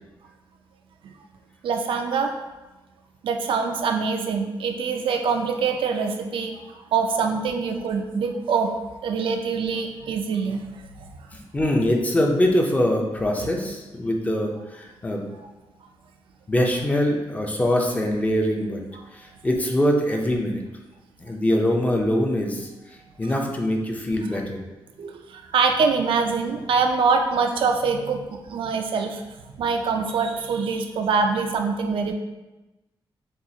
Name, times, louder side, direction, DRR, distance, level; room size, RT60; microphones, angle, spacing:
voice 1, 1.6-2.3 3.2-8.7 9.0-10.6 25.0-29.2 29.6-32.1, right 5 dB, 75° right, 4 dB, 0.4 m, -24 dB
voice 2, 11.3-15.2 16.5-18.8 19.1-20.6 21.2-22.7 23.2-24.6, left 1 dB, 15° left, 1 dB, 0.5 m, -23 dB
7.0 x 2.4 x 2.7 m, 1.1 s
wide cardioid pair, 155°, 9 cm